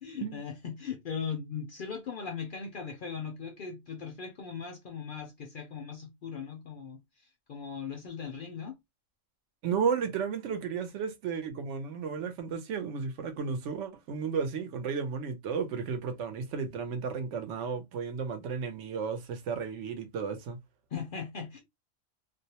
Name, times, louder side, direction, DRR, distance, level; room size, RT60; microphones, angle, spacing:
voice 1, 0.0-8.8 20.9-21.6, left 6 dB, 60° left, 0.6 m, -39 dB
voice 2, 9.6-20.6, right 6 dB, 75° right, 0.9 m, -33 dB
2.5 x 2.0 x 2.8 m
omnidirectional pair, 1.3 m